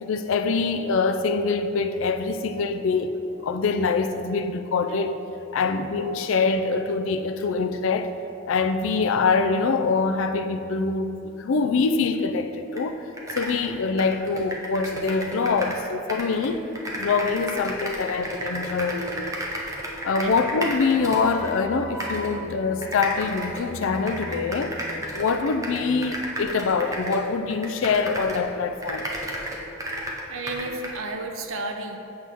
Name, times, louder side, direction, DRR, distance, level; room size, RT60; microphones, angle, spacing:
voice 1, 0.0-3.1 3.4-5.2 5.5-8.2 8.5-13.1 13.4-16.6 17.0-19.3 20.0-24.8 25.1-29.1, left 4 dB, 65° left, 0.4 m, -24 dB
sound 1, 12.8-12.9 13.1-15.8 16.1-21.5 22.0-22.3 22.8-28.5 28.8-31.0, right 1 dB, 15° right, 0.6 m, -33 dB
sound 2, 21.0-26.2, right 1 dB, 10° left, 0.9 m, -40 dB
voice 2, 30.3-32.0, right 2 dB, 70° right, 0.6 m, -32 dB
7.7 x 5.9 x 3.5 m
head